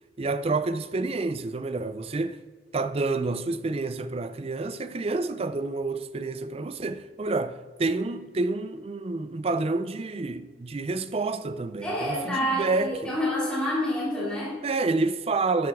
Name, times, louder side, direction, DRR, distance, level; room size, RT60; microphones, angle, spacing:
voice 1, 0.2-2.4 2.7-13.1 14.6-15.7, right 3 dB, 30° right, 0.4 m, -29 dB
voice 2, 11.8-14.6, equal, 5° left, 2.6 m, -28 dB
13.0 x 7.9 x 3.6 m
head